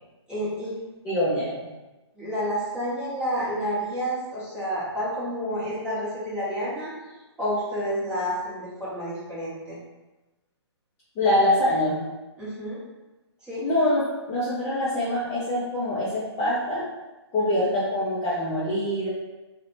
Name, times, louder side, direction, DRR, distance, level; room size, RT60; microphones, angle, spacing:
voice 1, 0.3-0.7 2.1-6.9 7.4-9.8 12.4-12.8 13.4-13.6 17.4-17.5, equal, 5° right, -11 dB, 0.8 m, -29 dB
voice 2, 1.0-1.5 11.2-12.0 13.6-14.0 14.3-16.8 17.3-19.1, left 1 dB, 15° left, -10 dB, 0.4 m, -24 dB
2.5 x 2.1 x 2.9 m, 1.1 s
hypercardioid pair, 155°, 15 cm